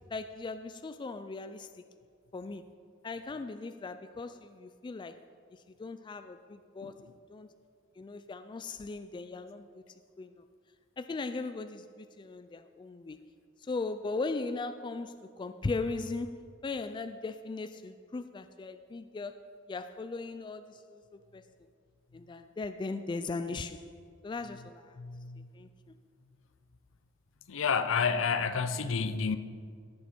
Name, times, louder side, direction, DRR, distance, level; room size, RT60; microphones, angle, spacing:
voice 1, 0.1-1.7 2.3-2.7 3.0-5.2 5.5-7.5 8.0-9.8 10.2-10.4 11.0-13.2 13.6-19.4 19.7-21.4 22.1-23.9 24.2-25.0 25.5-26.0, left 3 dB, 25° left, 0.3 m, -38 dB
voice 2, 25.0-25.5 27.5-29.4, left 5 dB, 70° left, 0.6 m, -30 dB
17.0 x 7.0 x 4.4 m
head